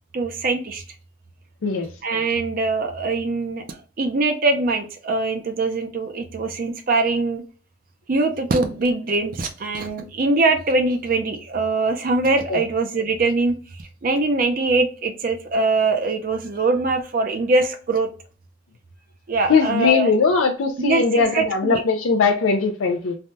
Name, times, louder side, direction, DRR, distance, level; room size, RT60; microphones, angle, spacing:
voice 1, 0.1-0.8 2.0-7.4 8.1-13.5 14.0-18.1 19.3-20.1 20.8-21.8, right 3 dB, 45° right, 0.5 m, -22 dB
voice 2, 19.5-23.2, left 4 dB, 80° left, 0.4 m, -20 dB
3.4 x 2.2 x 2.6 m
head